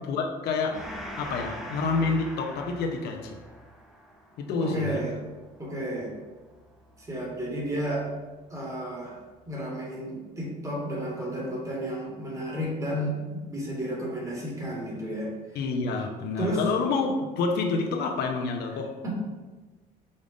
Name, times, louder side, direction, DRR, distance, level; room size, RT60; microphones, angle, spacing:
voice 1, 0.1-0.9 1.2-3.4 4.4-5.0 15.5-18.9, left 4 dB, 75° left, 3 dB, 0.6 m, -28 dB
Gong, 0.7-7.7, equal, ahead, 0.6 m, -43 dB
voice 2, 4.6-5.1 5.6-6.1 7.0-8.1 8.5-15.3 16.4-16.6 19.0-19.1, equal, 20° right, -2 dB, 1.2 m, -32 dB
5.2 x 2.4 x 3.5 m, 1.3 s
cardioid pair, 110°, 17 cm